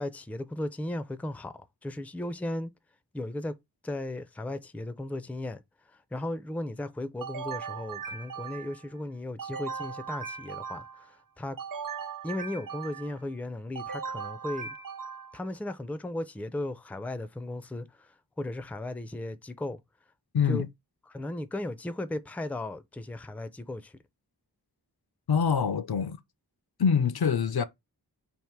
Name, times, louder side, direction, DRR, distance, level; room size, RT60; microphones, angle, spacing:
voice 1, 0.0-2.7 3.1-3.6 3.8-11.6 12.2-14.7 15.3-19.8 20.5-20.7 21.1-23.9, left 1 dB, 5° left, 0.4 m, -36 dB
sound 1, 7.2-8.9 9.4-11.1 11.6-13.2 13.7-15.5, right 6 dB, 55° right, 0.6 m, -38 dB
voice 2, 20.3-20.7 25.3-26.2 26.8-27.6, left 6 dB, 65° left, 0.5 m, -25 dB
3.5 x 2.5 x 4.5 m
wide cardioid pair, 60°, 40 cm